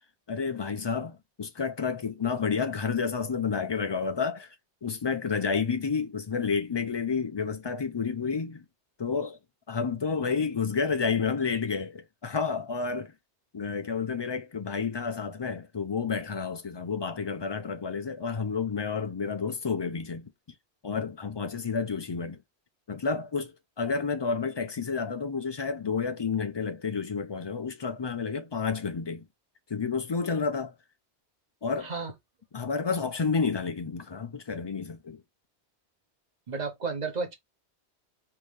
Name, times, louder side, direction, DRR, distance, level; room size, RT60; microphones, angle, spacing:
voice 1, 0.3-4.5 4.8-8.6 9.0-9.4 9.7-13.1 13.5-20.3 20.8-22.4 22.9-29.2 29.7-30.7 31.6-31.9 32.5-35.2, left 5 dB, 45° left, 0.3 m, -30 dB
voice 2, 31.8-32.1 36.5-37.3, right 4 dB, 40° right, 1.0 m, -32 dB
3.4 x 2.7 x 3.1 m
omnidirectional pair, 1.1 m